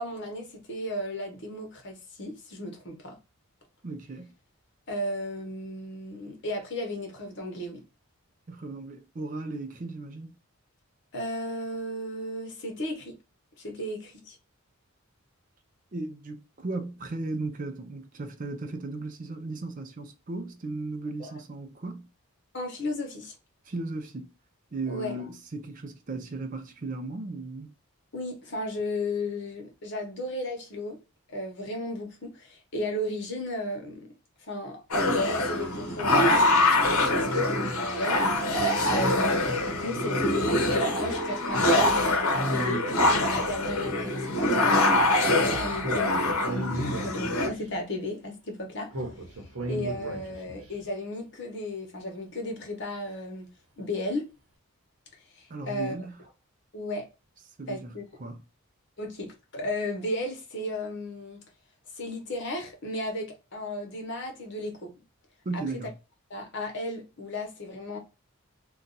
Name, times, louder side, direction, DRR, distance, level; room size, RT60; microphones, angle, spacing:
voice 1, 0.0-3.2 4.9-7.8 11.1-13.2 13.6-14.4 21.2-21.3 22.5-23.3 24.9-25.2 28.1-31.0 31.3-34.1 34.4-38.2 38.9-45.1 45.4-46.4 47.0-48.9 49.3-49.4 49.7-53.5 53.8-54.3 55.3-55.9 56.7-57.1 57.7-58.0 59.0-61.4 61.9-64.9 65.5-65.8 66.3-68.0, left 1 dB, 50° left, 1.1 m, -34 dB
voice 2, 3.8-4.3 8.5-10.4 15.9-22.1 23.7-24.3 24.7-27.7 55.5-56.2 57.6-57.9 58.2-58.4 65.5-65.9, right 2 dB, 35° right, 0.4 m, -36 dB
sound 1, 34.9-47.5, left 1 dB, 75° left, 0.8 m, -24 dB
Speech, 45.8-47.6 48.9-50.7, right 1 dB, 70° right, 0.9 m, -35 dB
2.7 x 2.3 x 3.8 m
head